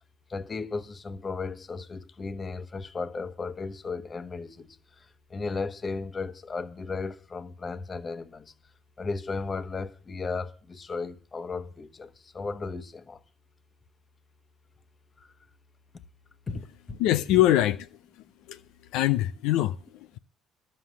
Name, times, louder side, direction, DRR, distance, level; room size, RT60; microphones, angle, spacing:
voice 1, 0.3-8.5 9.0-13.2 15.2-15.3 16.5-17.0, left 4 dB, 35° left, 1.2 m, -35 dB
voice 2, 17.0-18.0 18.5-18.6 18.9-20.2, left 14 dB, 85° left, 0.5 m, -24 dB
11.5 x 7.8 x 8.1 m
supercardioid pair, 80°, 0 cm